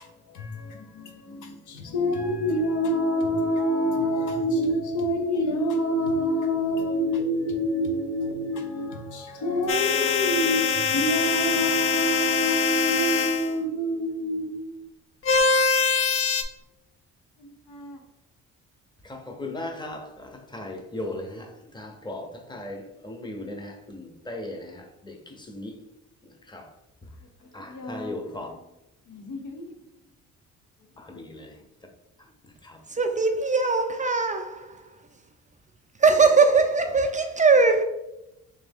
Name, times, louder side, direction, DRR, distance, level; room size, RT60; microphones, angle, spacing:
voice 1, 0.0-14.9 17.4-18.0 27.6-28.6 29.1-29.7 31.1-31.3, equal, 80° left, 0.8 m, -27 dB
sound 1, 9.7-13.5 15.2-16.4, left 5 dB, 45° left, 0.5 m, -23 dB
voice 2, 19.0-21.5 21.7-25.1 25.5-25.7 26.5-26.6 27.5-28.5 31.1-31.5 32.6-32.8, left 2 dB, 15° left, 0.8 m, -37 dB
voice 3, 33.0-34.7 36.0-37.8, right 4 dB, 25° right, 0.4 m, -20 dB
3.3 x 3.2 x 3.5 m
cardioid pair, 90°, 30 cm